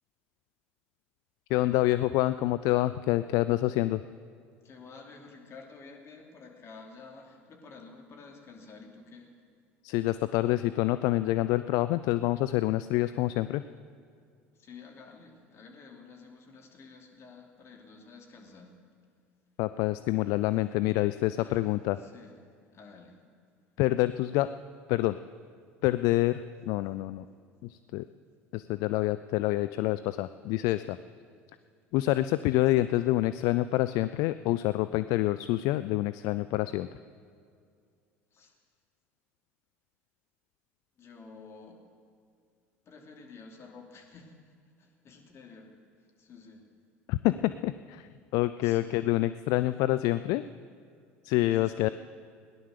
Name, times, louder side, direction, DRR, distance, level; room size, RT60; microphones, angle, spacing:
voice 1, 1.5-4.0 9.8-13.6 19.6-22.0 23.8-24.5 24.9-25.2 25.8-27.3 27.6-28.1 28.5-31.0 31.9-36.9 47.1-50.4 51.2-51.9, left 16 dB, 65° left, 13 dB, 0.4 m, -27 dB
voice 2, 4.6-9.3 14.5-18.8 21.4-22.4 22.7-23.2 38.3-38.5 41.0-41.8 42.8-46.7 48.6-49.0 49.5-49.6 51.4-51.9, left 4 dB, 45° left, 1 dB, 3.1 m, -51 dB
17.5 x 11.0 x 6.7 m, 2.3 s
hypercardioid pair, 70°, 7 cm